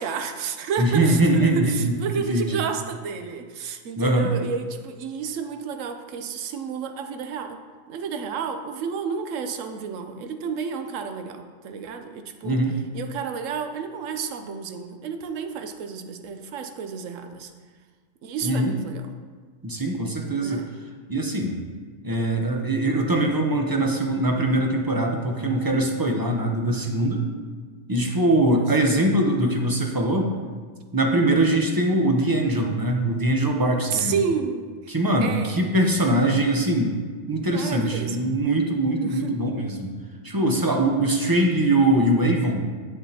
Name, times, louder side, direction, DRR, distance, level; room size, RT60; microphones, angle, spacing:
voice 1, 0.0-7.6 7.9-12.6 12.9-17.5 18.2-19.1 20.3-20.7 28.5-28.7 33.9-35.6 37.5-38.3 39.0-39.4, right 6 dB, 80° right, 7 dB, 1.0 m, -31 dB
voice 2, 0.8-2.6 4.0-4.3 12.4-12.8 18.4-18.7 19.6-20.6 21.1-21.6 22.0-27.3 27.9-30.3 30.9-34.2 34.9-36.9 37.3-39.9 40.2-42.7, right 1 dB, 25° right, 1 dB, 0.5 m, -22 dB
8.5 x 6.9 x 2.8 m, 1.5 s
omnidirectional pair, 1.3 m